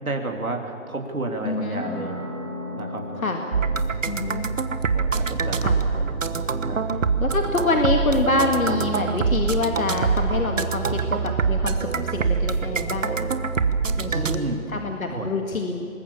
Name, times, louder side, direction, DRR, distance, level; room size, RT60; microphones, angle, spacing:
voice 1, 0.0-2.2 2.7-3.2 3.7-3.9 4.9-6.2 6.7-6.8 14.1-14.6 15.1-15.3, right 2 dB, 90° right, 3 dB, 3.1 m, -31 dB
voice 2, 1.4-1.9 3.2-3.4 4.1-4.5 5.6-5.8 7.2-13.3 14.0-14.4 14.7-15.9, left 3 dB, 75° left, 3 dB, 2.2 m, -26 dB
sound 1, 1.8-9.0, left 1 dB, 15° left, 6.6 m, -39 dB
sound 2, 3.5-14.4, right 5 dB, 65° right, 1.4 m, -24 dB
25.5 x 20.5 x 7.1 m, 2.7 s
figure-of-eight pair, 155°, 42 cm